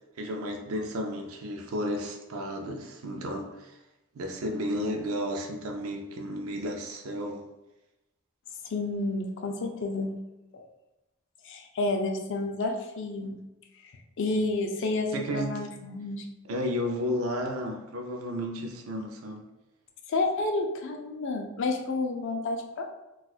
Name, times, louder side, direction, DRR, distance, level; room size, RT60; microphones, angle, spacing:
voice 1, 0.2-3.8 4.1-7.5 15.1-15.6 16.5-19.5, equal, 70° right, 3 dB, 0.4 m, -33 dB
voice 2, 8.6-10.2 10.5-10.6 11.4-13.4 13.8-13.9 14.2-16.3 20.1-22.9, left 2 dB, 60° left, 3 dB, 0.5 m, -30 dB
4.1 x 2.3 x 2.4 m, 0.98 s
head